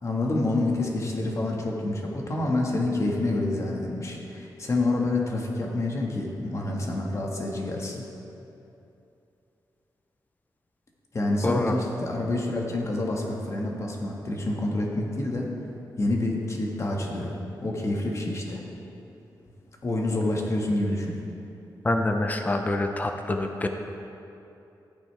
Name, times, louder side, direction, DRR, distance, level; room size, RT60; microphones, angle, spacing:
voice 1, 0.0-8.0 11.1-15.5 16.0-17.3 17.6-18.6 19.8-21.1, left 2 dB, 40° left, -1 dB, 1.6 m, -27 dB
voice 2, 11.4-11.8 21.8-23.7, left 2 dB, 20° left, 5 dB, 0.7 m, -26 dB
14.0 x 9.3 x 3.4 m, 2.8 s
wide cardioid pair, 105°, 8 cm